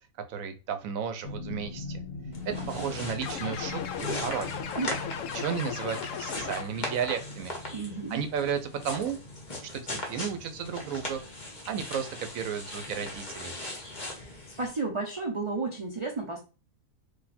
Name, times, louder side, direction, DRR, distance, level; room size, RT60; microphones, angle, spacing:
voice 1, 0.3-2.0 2.4-4.5 5.3-7.5 8.1-9.2 9.7-11.2 11.7-13.5, right 7 dB, 70° right, 8 dB, 1.0 m, -33 dB
sound 1, 1.2-11.9 12.2-12.6 12.9-13.1, left 3 dB, 55° left, 1.6 m, -42 dB
sound 2, 2.3-14.7, left 1 dB, 35° left, 1.2 m, -39 dB
sound 3, 3.2-7.0, left 8 dB, 70° left, 0.9 m, -37 dB
voice 2, 7.7-8.3 14.6-16.4, right 3 dB, 35° right, 1 dB, 0.5 m, -32 dB
4.3 x 2.6 x 4.2 m, 0.33 s
omnidirectional pair, 1.5 m